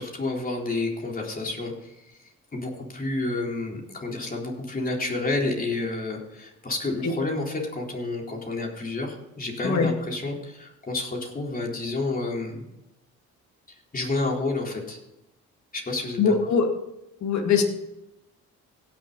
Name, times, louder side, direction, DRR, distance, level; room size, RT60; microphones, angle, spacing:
voice 1, 0.0-2.2 2.5-12.6 13.9-15.0 15.7-16.3, left 2 dB, 30° left, 0 dB, 3.9 m, -30 dB
voice 2, 16.2-16.7 17.2-17.6, left 5 dB, 65° left, 3 dB, 2.3 m, -22 dB
17.0 x 7.2 x 4.0 m, 0.89 s
cardioid pair, 90°, 30 cm